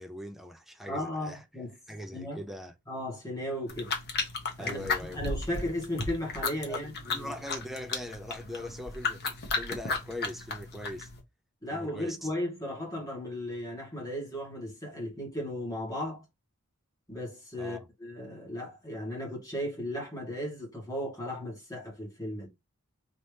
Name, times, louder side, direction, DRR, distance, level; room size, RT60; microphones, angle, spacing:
voice 1, 0.0-1.4 1.9-2.7 4.6-5.2 6.7-9.3 9.6-11.1 11.7-12.3 17.6-17.9, left 1 dB, ahead, 0.4 m, -41 dB
voice 2, 0.9-1.8 2.1-2.4 2.9-3.9 4.6-4.9 5.2-7.3 11.6-16.2 17.1-22.5, left 1 dB, 15° left, 1.8 m, -36 dB
sound 1, 3.7-11.2, left 4 dB, 45° left, 1.0 m, -35 dB
4.2 x 2.9 x 3.2 m
head